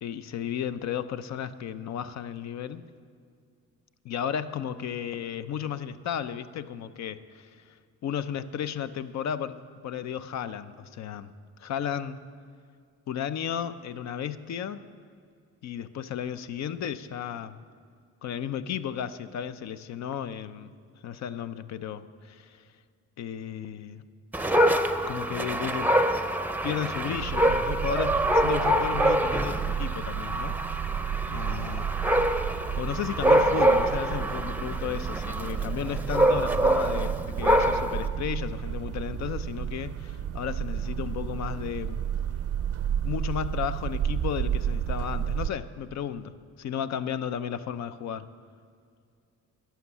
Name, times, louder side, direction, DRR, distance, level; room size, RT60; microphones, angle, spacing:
voice 1, 0.0-2.8 4.0-7.6 8.0-11.3 11.6-12.2 13.1-14.8 15.6-17.6 18.2-20.7 21.0-22.6 23.2-24.0 25.1-25.9 26.6-30.6 31.3-31.9 32.8-42.0 43.0-48.3, left 9 dB, 65° left, 12 dB, 0.7 m, -34 dB
Dog, 24.3-38.1, right 1 dB, 5° right, 0.6 m, -25 dB
sound 1, 27.2-45.5, right 9 dB, 55° right, 0.5 m, -32 dB
11.5 x 7.2 x 9.8 m, 2.2 s
cardioid pair, 90°, 30 cm